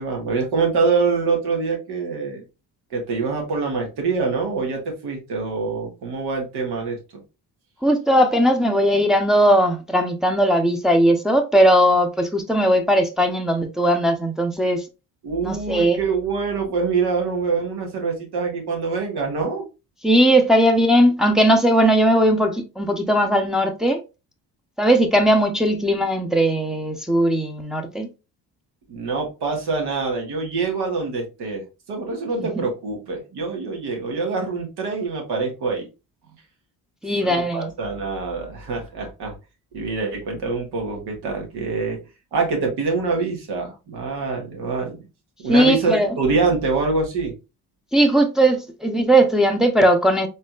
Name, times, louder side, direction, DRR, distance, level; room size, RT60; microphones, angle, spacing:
voice 1, 0.0-2.4 2.9-7.0 15.2-19.6 28.9-35.9 37.2-39.3 39.7-42.0 42.3-45.0 45.4-47.3, right 4 dB, 65° right, 1.7 m, -25 dB
voice 2, 7.8-14.8 15.4-16.0 20.0-24.0 24.8-28.1 32.4-32.5 37.0-37.7 45.5-46.1 47.9-50.3, right 1 dB, ahead, 0.8 m, -18 dB
4.1 x 2.9 x 2.4 m
supercardioid pair, 65°, 42 cm